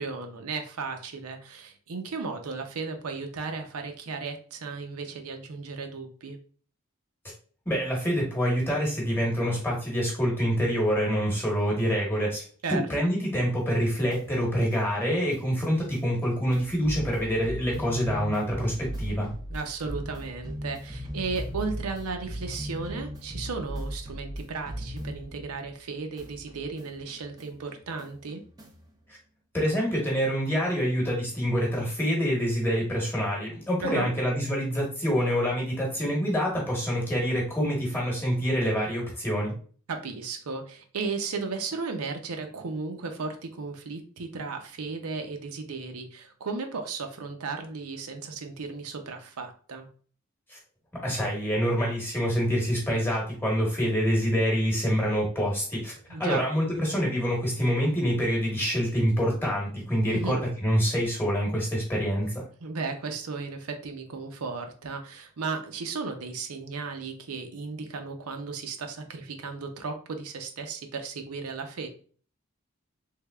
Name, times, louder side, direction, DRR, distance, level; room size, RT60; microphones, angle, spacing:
voice 1, 0.0-6.4 12.6-13.1 19.5-28.4 33.8-34.1 39.9-49.9 56.1-56.4 60.1-60.4 62.6-71.9, right 4 dB, 85° right, 5 dB, 0.6 m, -35 dB
voice 2, 7.7-12.4 12.7-19.3 29.5-39.5 50.5-50.6 50.9-62.4, equal, 10° left, -3 dB, 1.1 m, -26 dB
sound 1, 13.6-25.9 26.2-28.9, equal, 15° right, 0.4 m, -39 dB
3.4 x 3.2 x 2.3 m, 0.43 s
head